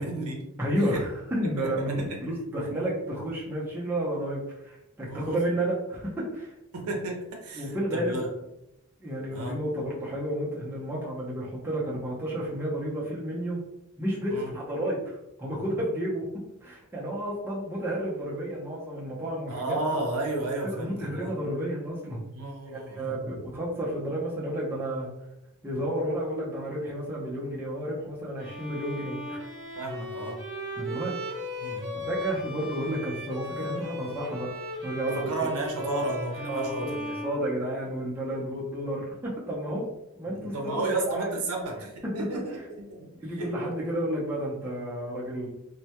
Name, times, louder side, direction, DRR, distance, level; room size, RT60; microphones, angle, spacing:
voice 1, 0.0-0.4 0.8-1.0 1.4-2.3 5.1-5.4 6.7-8.3 9.3-9.6 14.3-14.5 19.5-21.4 22.3-23.3 29.8-30.4 31.6-32.0 35.0-37.2 40.3-43.5, right 2 dB, 80° right, 1 dB, 0.6 m, -33 dB
voice 2, 0.6-6.5 7.6-8.2 9.0-13.6 14.0-16.3 16.6-19.8 20.6-22.2 22.7-25.1 25.6-29.4 30.8-31.1 32.0-34.5 34.8-35.2 35.8-36.0 36.5-36.9 37.2-39.9 40.2-41.3 43.2-45.5, right 1 dB, 10° right, -6 dB, 0.5 m, -31 dB
Bowed string instrument, 28.4-38.1, left 1 dB, 50° right, 0.9 m, -37 dB
2.1 x 2.1 x 2.8 m, 0.87 s
head